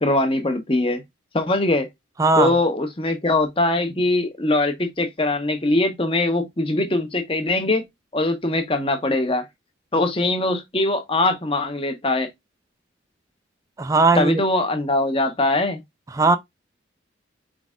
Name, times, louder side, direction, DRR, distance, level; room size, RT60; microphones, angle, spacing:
voice 1, 0.0-1.0 1.3-1.9 2.4-7.8 8.1-9.4 9.9-12.3 14.1-15.8, left 2 dB, 30° left, 0.9 m, -22 dB
voice 2, 2.2-2.5 13.8-14.4 16.1-16.4, right 3 dB, 15° right, 0.3 m, -18 dB
4.7 x 3.9 x 2.4 m
head